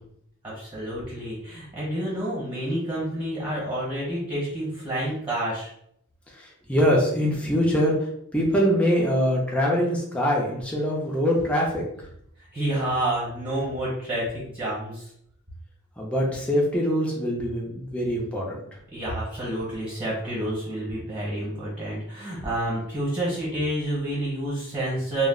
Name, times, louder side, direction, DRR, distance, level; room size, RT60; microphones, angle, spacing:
voice 1, 0.4-5.7 12.5-15.1 18.9-25.3, right 1 dB, 25° right, -6 dB, 1.0 m, -29 dB
voice 2, 6.7-7.9 8.3-11.8 16.0-18.6, equal, 5° left, -3 dB, 0.5 m, -23 dB
2.4 x 2.0 x 3.6 m, 0.71 s
head